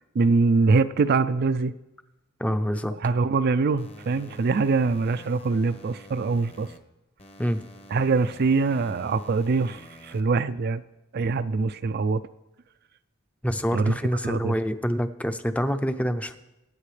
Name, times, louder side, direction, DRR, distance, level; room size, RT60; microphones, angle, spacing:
voice 1, 0.1-1.7 3.0-6.7 7.9-10.8 11.1-12.2 13.7-13.9 14.2-14.5, right 4 dB, 50° right, 12 dB, 0.4 m, -23 dB
voice 2, 2.4-3.0 7.4-7.6 13.4-16.4, equal, 5° left, 8 dB, 0.6 m, -26 dB
sound 1, 3.8-6.8 7.2-10.2, left 1 dB, 30° left, 1.0 m, -47 dB
23.5 x 9.1 x 3.3 m, 0.96 s
head